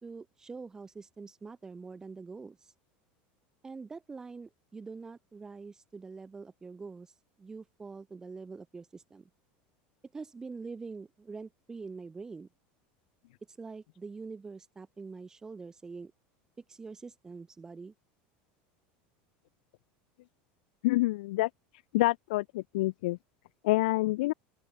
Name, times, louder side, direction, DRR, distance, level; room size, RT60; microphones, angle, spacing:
voice 1, 0.0-2.7 3.6-9.3 10.1-12.5 13.5-16.1 16.7-17.9, right 4 dB, 10° right, 4.0 m, -45 dB
voice 2, 20.8-21.5 21.9-23.2 23.6-24.3, left 19 dB, 85° left, 0.9 m, -27 dB
open air
supercardioid pair, 160°, 5 cm